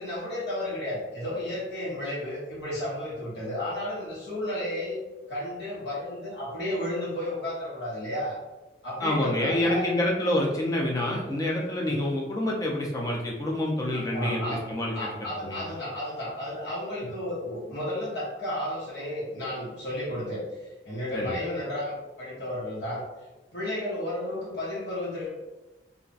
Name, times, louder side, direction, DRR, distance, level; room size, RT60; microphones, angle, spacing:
voice 1, 0.0-5.0 5.3-8.4 8.8-9.9 11.9-12.1 13.9-14.6 14.9-23.0 23.5-25.3, left 1 dB, 75° left, -8 dB, 1.1 m, -33 dB
voice 2, 9.0-15.1 15.4-15.6 21.1-21.3, left 1 dB, 20° left, -2 dB, 0.5 m, -27 dB
2.4 x 2.2 x 3.8 m, 1.1 s
head